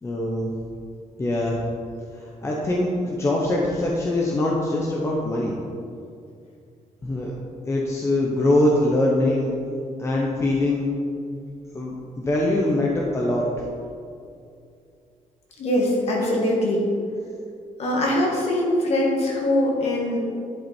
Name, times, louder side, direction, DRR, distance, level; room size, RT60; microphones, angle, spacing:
voice 1, 0.0-0.5 1.2-1.6 2.4-5.5 7.0-7.3 7.7-9.5 10.0-10.9 11.7-13.5, left 1 dB, 20° left, -2 dB, 1.0 m, -23 dB
voice 2, 15.6-16.8 17.8-20.2, left 1 dB, 50° left, -2 dB, 2.3 m, -22 dB
11.0 x 8.3 x 4.5 m, 2.4 s
wide cardioid pair, 180°, 14 cm